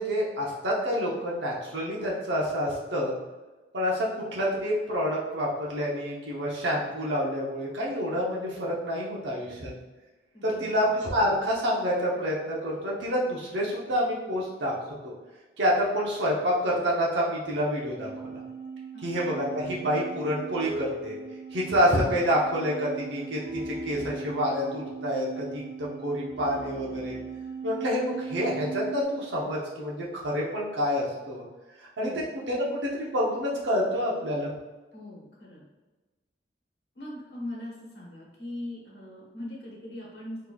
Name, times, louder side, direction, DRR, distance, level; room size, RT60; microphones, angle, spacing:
voice 1, 0.0-3.1 3.7-9.7 10.4-14.7 15.0-15.1 15.6-18.4 19.0-21.2 21.5-27.2 27.6-31.4 31.8-32.1 32.5-34.5, equal, 80° right, -4 dB, 0.9 m, -28 dB
voice 2, 10.3-10.9 18.9-19.2 32.0-32.3 34.9-35.6 36.9-40.5, left 1 dB, 60° left, -5 dB, 1.0 m, -40 dB
sound 1, 17.8-29.0, right 4 dB, 50° right, 1.0 m, -39 dB
3.8 x 3.2 x 2.3 m, 1.2 s
head